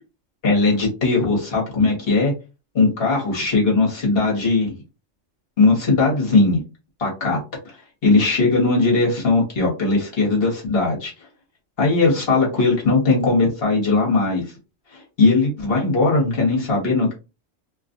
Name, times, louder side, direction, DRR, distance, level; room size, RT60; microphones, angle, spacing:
voice 1, 0.4-2.3 2.7-4.7 5.6-6.6 7.0-7.4 8.0-11.1 11.8-14.4 14.9-17.1, left 3 dB, 50° left, -2 dB, 1.4 m, -19 dB
2.9 x 2.4 x 2.5 m, 0.29 s
omnidirectional pair, 1.3 m